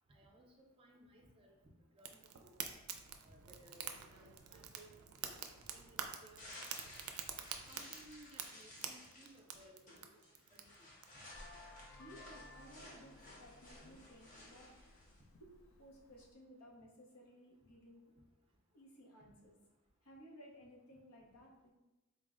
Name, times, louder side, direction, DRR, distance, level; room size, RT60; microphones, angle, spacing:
voice 1, 0.1-1.6 1.9-2.8 3.2-4.9 5.2-5.4 5.7-6.9 7.7-10.1 10.5-10.9, right 1 dB, 25° right, 0 dB, 0.5 m, -61 dB
Fire, 2.0-11.1, right 8 dB, 85° right, 0.4 m, -48 dB
sound 1, 5.3-15.2, left 1 dB, 35° left, 0.8 m, -57 dB
Vehicle horn car horn honking, 11.3-16.3, left 2 dB, 65° left, 0.4 m, -59 dB
voice 2, 12.0-13.1 13.4-14.7 15.4-15.5 15.8-18.2 18.7-19.6 20.0-21.7, equal, 90° left, -2 dB, 0.8 m, -58 dB
4.0 x 2.0 x 3.7 m, 1.0 s
head